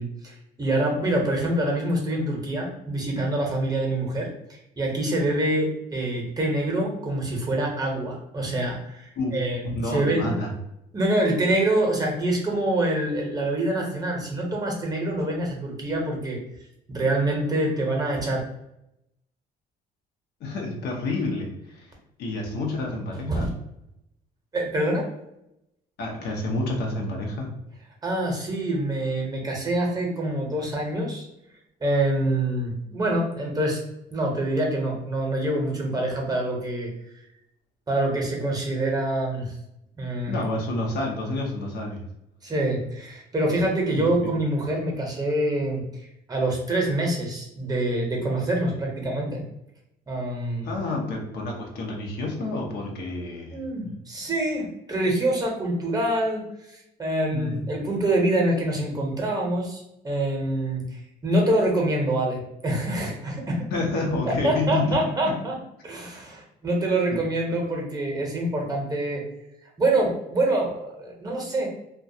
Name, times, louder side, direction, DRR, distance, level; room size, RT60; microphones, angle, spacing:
voice 1, 0.0-4.3 4.8-10.4 10.9-16.4 16.9-18.4 23.3-23.5 24.5-25.0 28.0-31.3 31.8-33.8 34.1-36.9 37.9-39.6 40.0-40.3 42.4-49.4 50.1-50.7 53.5-63.7 64.2-65.5 65.8-69.2 69.8-71.7, right 1 dB, 20° right, -1 dB, 0.7 m, -26 dB
voice 2, 9.2-10.5 20.4-23.5 26.0-27.5 40.3-42.1 44.0-44.3 50.6-53.6 57.3-57.7 63.7-65.0 65.2-65.3 67.1-67.2, left 2 dB, 70° left, 0 dB, 0.7 m, -29 dB
2.3 x 2.2 x 2.6 m, 0.83 s
cardioid pair, 110°, 17 cm